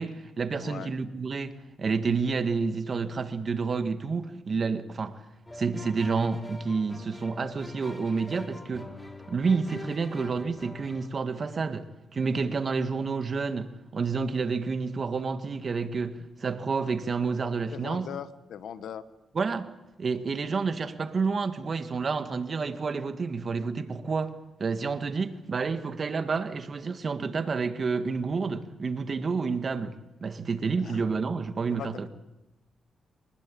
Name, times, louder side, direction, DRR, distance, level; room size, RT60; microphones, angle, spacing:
voice 1, 0.0-1.5 1.8-5.2 5.6-9.0 9.3-18.1 19.3-19.7 20.0-32.1, right 4 dB, 50° right, 1.9 m, -29 dB
voice 2, 0.6-0.9 17.7-19.0 30.8-31.0 31.7-32.1, left 9 dB, 80° left, 1.3 m, -39 dB
sound 1, 5.5-11.1, left 1 dB, 15° left, 3.4 m, -44 dB
24.0 x 20.0 x 8.7 m
cardioid pair, 70°, 0 cm